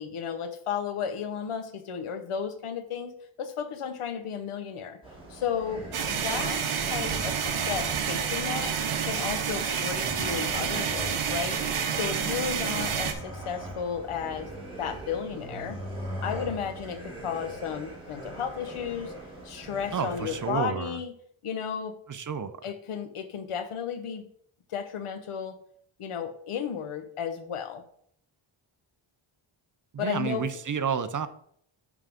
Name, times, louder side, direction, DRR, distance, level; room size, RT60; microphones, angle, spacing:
voice 1, 0.0-5.0 5.3-8.8 9.0-11.6 11.9-14.5 14.8-15.8 16.2-19.1 19.4-21.1 21.4-22.0 22.6-24.3 24.7-25.6 26.0-27.8 30.0-30.5, left 7 dB, 80° left, 9 dB, 1.0 m, -34 dB
sound 1, 5.0-20.5, right 1 dB, 10° right, 2.4 m, -41 dB
sound 2, 5.9-13.1, right 7 dB, 75° right, 1.0 m, -29 dB
voice 2, 19.9-21.0 22.1-22.5 29.9-31.3, right 7 dB, 40° right, 12 dB, 0.5 m, -30 dB
11.0 x 3.7 x 3.5 m, 0.66 s
wide cardioid pair, 125°, 50 cm